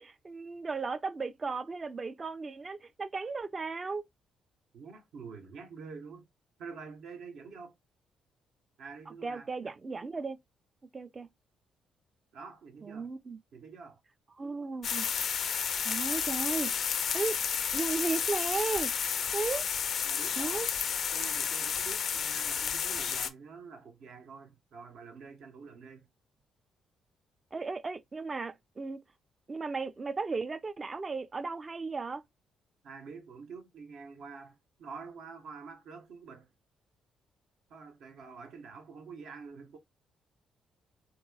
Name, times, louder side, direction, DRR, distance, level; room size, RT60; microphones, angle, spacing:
voice 1, 0.0-4.0 9.2-10.4 10.9-11.3 12.8-13.4 14.4-15.1 15.8-16.7 17.1-17.4 17.7-18.9 19.3-19.6 20.4-20.7 27.5-29.0 29.5-32.2, right 4 dB, 30° right, 0.4 m, -35 dB
voice 2, 4.7-6.3 6.6-7.7 8.8-9.5 12.3-13.1 13.5-14.0 20.0-20.6 21.1-26.1 32.8-36.5 37.7-39.8, right 5 dB, 75° right, 0.9 m, -47 dB
sound 1, 14.8-23.3, left 7 dB, 60° left, 0.4 m, -31 dB
3.7 x 2.9 x 2.2 m
cardioid pair, 90°, 0 cm